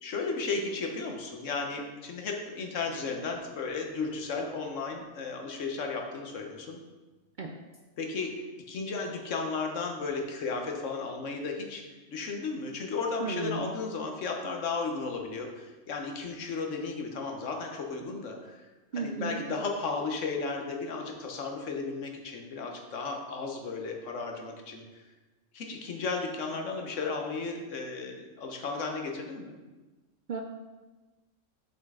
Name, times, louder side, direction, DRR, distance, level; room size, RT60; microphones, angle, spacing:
voice 1, 0.0-6.8 8.0-8.3 8.7-11.8 12.1-18.6 19.0-24.8 25.5-29.6, left 4 dB, 75° left, 2 dB, 1.3 m, -34 dB
voice 2, 13.2-13.7 18.9-19.4 30.3-30.4, right 4 dB, 60° right, 3 dB, 0.5 m, -34 dB
7.5 x 5.5 x 3.7 m, 1.2 s
omnidirectional pair, 1.3 m